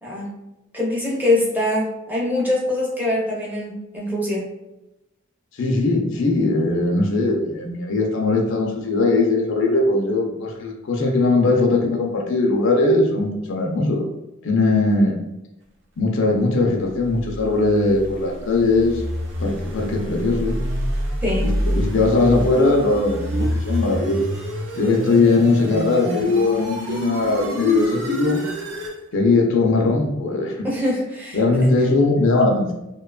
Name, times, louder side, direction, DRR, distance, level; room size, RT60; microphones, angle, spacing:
voice 1, 0.0-0.4 0.7-4.5 21.2-21.6 30.6-31.4, left 1 dB, 10° right, -5 dB, 0.6 m, -23 dB
voice 2, 5.6-14.0 14.4-15.2 16.0-19.0 19.4-20.6 21.4-24.3 24.8-28.4 29.1-30.7 31.3-32.7, left 3 dB, 65° left, 0 dB, 0.5 m, -19 dB
sound 1, 16.8-29.0, equal, 65° right, 0.6 m, -27 dB
2.8 x 2.2 x 2.3 m, 0.95 s
head